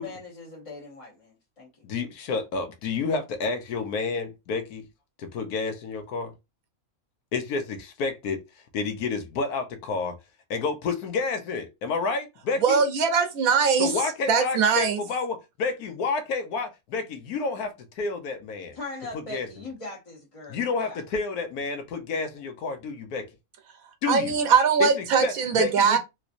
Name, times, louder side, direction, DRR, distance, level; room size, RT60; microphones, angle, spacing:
voice 1, 0.0-1.7 18.7-21.0, left 2 dB, 30° left, 0.8 m, -40 dB
voice 2, 1.8-4.9 5.2-6.3 7.3-8.4 8.7-10.2 10.5-12.8 13.8-18.8 19.3-19.5 20.5-23.3 24.0-24.3 24.8-24.9 25.2-26.0, left 4 dB, 90° left, 1.2 m, -29 dB
voice 3, 12.6-14.0 14.3-15.0 24.1-26.0, right 6 dB, 80° right, 1.1 m, -21 dB
3.2 x 3.1 x 2.5 m
omnidirectional pair, 1.5 m